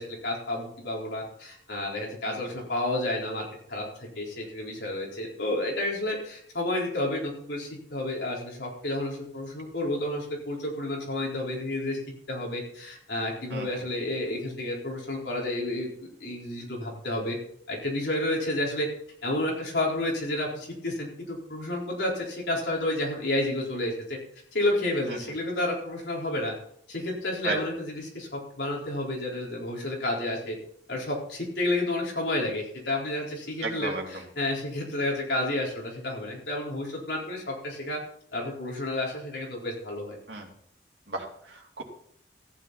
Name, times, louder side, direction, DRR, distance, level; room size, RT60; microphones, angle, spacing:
voice 1, 0.0-12.0 12.3-17.4 17.7-18.9 19.2-24.2 24.5-26.5 26.9-30.6 30.9-38.0 38.3-40.2, left 1 dB, 65° left, -2 dB, 4.3 m, -30 dB
voice 2, 33.6-34.2 40.3-40.5 41.1-41.8, right 3 dB, 65° right, 0 dB, 2.8 m, -34 dB
14.5 x 9.4 x 4.2 m, 0.64 s
head